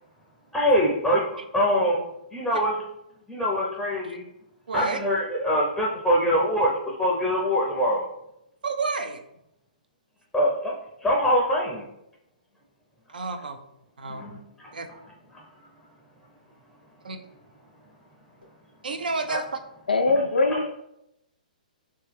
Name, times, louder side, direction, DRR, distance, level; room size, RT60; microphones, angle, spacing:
voice 1, 0.5-1.2 1.5-2.0 2.3-2.7 3.3-4.2 4.7-6.7 7.0-8.0 10.3-10.8 11.0-11.8 14.1-14.4 19.3-19.4, equal, 5° left, -3 dB, 0.5 m, -23 dB
voice 2, 4.7-5.0 8.6-9.2 13.1-13.6 14.0-14.3 14.7-14.9 17.0-17.2 18.8-19.4, right 4 dB, 80° right, 7 dB, 0.5 m, -30 dB
voice 3, 19.9-20.7, left 3 dB, 85° left, 5 dB, 0.4 m, -21 dB
3.1 x 3.0 x 3.3 m, 0.83 s
hypercardioid pair, 130°, 5 cm